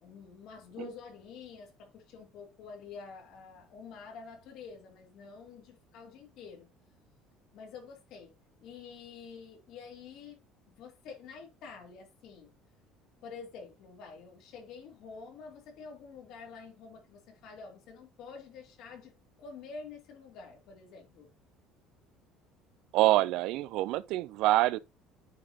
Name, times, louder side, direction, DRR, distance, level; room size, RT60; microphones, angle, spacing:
voice 1, 0.0-6.7 7.5-8.3 8.6-10.4 10.7-12.5 13.2-19.1 19.4-21.3, left 5 dB, 60° left, 2.8 m, -48 dB
voice 2, 22.9-24.8, right 16 dB, 70° right, 0.4 m, -26 dB
9.3 x 4.1 x 2.9 m
cardioid pair, 150°, 0 cm